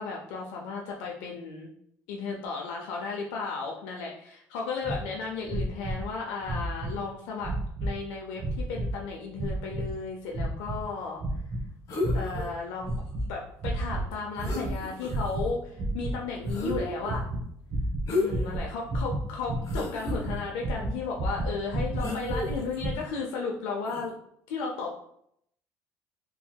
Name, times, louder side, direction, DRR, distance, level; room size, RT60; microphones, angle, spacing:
voice 1, 0.0-1.7 2.1-7.5 7.8-11.2 12.1-12.9 13.3-17.3 18.1-24.1 24.5-25.0, left 4 dB, 90° left, -1 dB, 0.4 m, -34 dB
sound 1, 4.8-5.0 5.4-6.1 6.4-7.0 7.4-8.0 8.4-8.9 9.3-9.9 10.3-10.8 11.2-11.6 12.0-12.5 12.8-13.3 13.6-14.1 14.4-14.8 15.0-15.5 15.8-22.9, right 1 dB, 45° right, 0.6 m, -31 dB
sound 2, 11.9-12.5 14.1-14.2 14.4-15.4 16.5-17.1 18.0-18.6 19.0-19.1 19.6-20.2 22.0-22.8 23.8-24.0, left 2 dB, 60° left, 0.9 m, -32 dB
3.0 x 2.8 x 2.2 m, 0.71 s
supercardioid pair, 95°, 7 cm